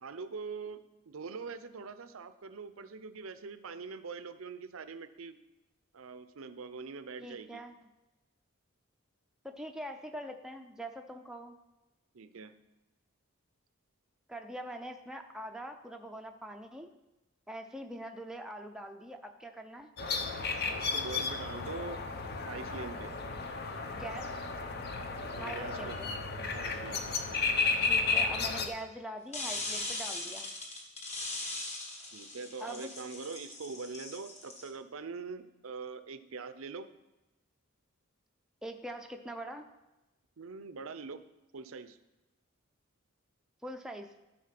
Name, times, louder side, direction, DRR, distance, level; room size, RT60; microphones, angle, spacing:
voice 1, 0.0-5.4 5.9-7.6 12.1-12.5 20.7-22.0 22.5-23.1 25.4-26.0 26.5-27.2 32.1-36.9 40.4-41.2 41.5-42.0, right 4 dB, 75° right, 12 dB, 0.6 m, -43 dB
voice 2, 7.2-7.7 9.4-11.5 14.3-16.9 17.5-19.9 23.9-24.3 25.4-26.1 27.9-30.5 32.6-32.9 38.6-39.7 43.6-44.1, right 1 dB, 5° right, 3 dB, 0.5 m, -43 dB
sound 1, 20.0-28.7, left 4 dB, 50° left, 0.8 m, -33 dB
sound 2, 29.3-34.7, left 2 dB, 30° left, 1.3 m, -40 dB
12.5 x 4.3 x 5.9 m, 1.0 s
head